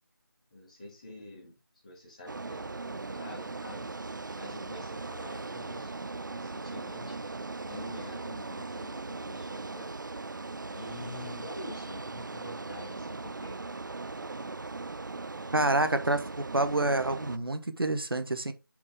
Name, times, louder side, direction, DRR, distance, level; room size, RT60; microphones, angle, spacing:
voice 1, 0.5-1.5 1.8-3.9 4.3-6.0 6.3-7.2 7.7-9.9 10.7-13.6 14.1-14.5, left 1 dB, 20° left, 2.0 m, -46 dB
sound 1, 2.3-17.4, right 3 dB, 60° right, 0.4 m, -39 dB
voice 2, 15.5-18.5, right 2 dB, 80° right, 1.0 m, -28 dB
6.6 x 5.2 x 3.5 m
figure-of-eight pair, 170°, 12 cm